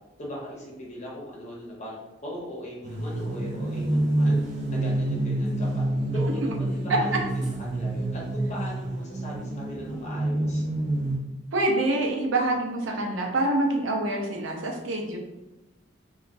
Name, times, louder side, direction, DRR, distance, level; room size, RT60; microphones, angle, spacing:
voice 1, 0.2-4.4 4.7-5.8 6.1-10.6, equal, 40° left, -4 dB, 0.9 m, -39 dB
sound 1, 2.8-11.2, right 1 dB, 40° right, 0.5 m, -27 dB
voice 2, 11.5-15.2, right 2 dB, 85° right, 0 dB, 0.6 m, -26 dB
3.0 x 2.3 x 2.5 m, 0.99 s
head